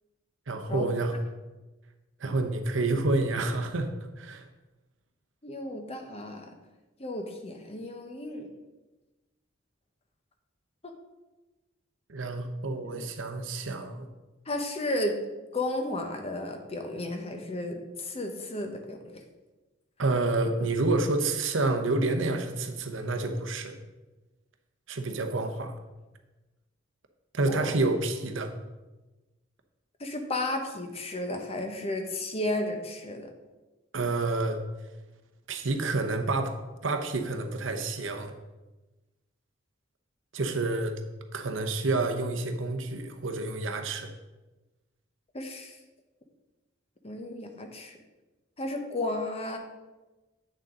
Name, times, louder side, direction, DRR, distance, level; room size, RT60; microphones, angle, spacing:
voice 1, 0.5-1.2 2.2-3.9 4.2-4.5 12.1-14.1 20.0-23.8 24.9-25.8 27.3-28.5 33.9-34.6 35.5-38.3 40.3-40.9 41.3-44.1, right 2 dB, 75° right, 5 dB, 0.8 m, -29 dB
voice 2, 5.4-6.5 7.0-8.5 10.8-10.9 12.8-13.1 14.5-15.2 15.5-19.2 27.5-27.8 30.0-33.3 45.3-45.8 47.0-48.0 48.6-49.6, left 1 dB, 30° left, 5 dB, 0.9 m, -33 dB
8.8 x 6.5 x 3.8 m, 1.1 s
head